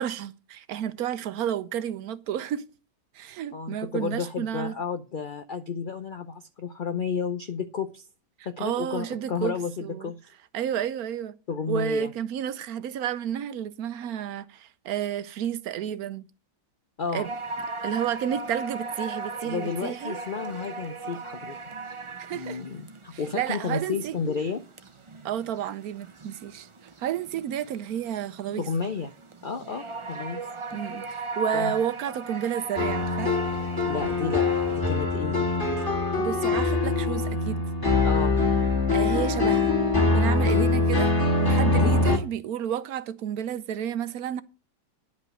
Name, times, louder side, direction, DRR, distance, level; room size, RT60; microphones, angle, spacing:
voice 1, 0.0-2.7 3.1-4.7 8.6-9.5 9.8-10.1 10.5-11.3 11.7-16.2 17.1-17.3 17.8-20.2 22.2-22.6 23.1-24.2 25.2-26.7 27.0-28.6 30.7-31.1 31.4-33.4 36.2-37.6 38.9-39.8 40.1-41.1 41.4-44.4, right 10 dB, 65° right, 1.1 m, -31 dB
voice 2, 3.5-8.1 8.4-10.2 11.5-12.1 17.0-17.3 19.4-21.6 22.3-24.6 28.6-29.1 29.4-30.5 31.5-31.8 33.9-35.9 38.0-38.4 40.4-40.7 41.7-41.9, left 5 dB, 70° left, 0.4 m, -32 dB
sound 1, 17.2-34.8, right 3 dB, 50° right, 0.3 m, -38 dB
sound 2, 32.8-42.2, left 3 dB, 15° left, 2.1 m, -23 dB
10.5 x 5.3 x 7.7 m
omnidirectional pair, 1.8 m